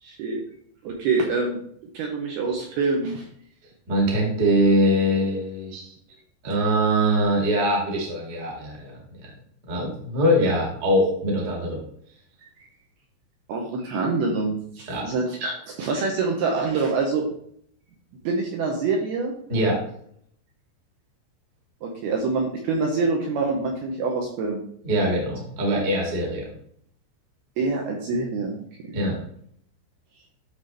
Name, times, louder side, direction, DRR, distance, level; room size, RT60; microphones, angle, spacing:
voice 1, 0.0-0.4 0.8-1.6 1.9-3.3 13.5-17.3 18.2-19.3 21.8-24.6 27.6-28.7, right 4 dB, 75° right, 0 dB, 2.4 m, -25 dB
voice 2, 3.9-5.9 6.4-9.0 9.7-11.8 14.9-15.0 19.5-19.8 24.8-26.5 28.9-29.2, equal, 35° right, -1 dB, 1.6 m, -22 dB
12.0 x 4.0 x 3.4 m, 0.65 s
omnidirectional pair, 5.4 m